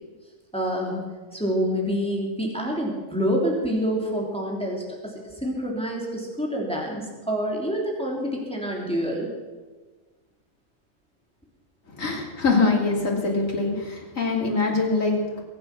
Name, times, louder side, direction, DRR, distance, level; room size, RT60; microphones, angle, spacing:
voice 1, 0.5-1.0 1.3-9.3, equal, 5° left, -2 dB, 3.1 m, -27 dB
voice 2, 12.0-15.4, left 3 dB, 85° left, -1 dB, 3.2 m, -23 dB
23.0 x 8.5 x 6.1 m, 1.3 s
omnidirectional pair, 1.3 m